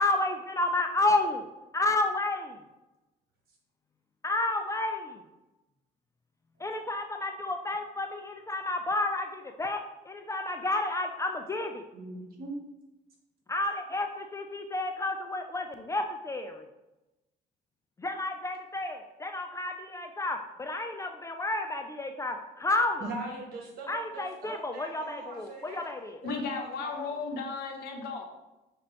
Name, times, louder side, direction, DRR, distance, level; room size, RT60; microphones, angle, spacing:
voice 1, 0.0-1.5 1.7-2.6 4.2-5.2 6.6-11.8 13.5-16.6 18.0-23.1 23.9-26.2, left 2 dB, 20° left, 4 dB, 0.3 m, -31 dB
voice 2, 11.9-12.5 23.0-25.8 26.2-27.2, right 2 dB, 65° right, 0 dB, 1.4 m, -41 dB
voice 3, 26.2-28.3, left 4 dB, 75° left, 3 dB, 0.9 m, -35 dB
5.9 x 2.9 x 3.0 m, 1.0 s
cardioid pair, 110°, 17 cm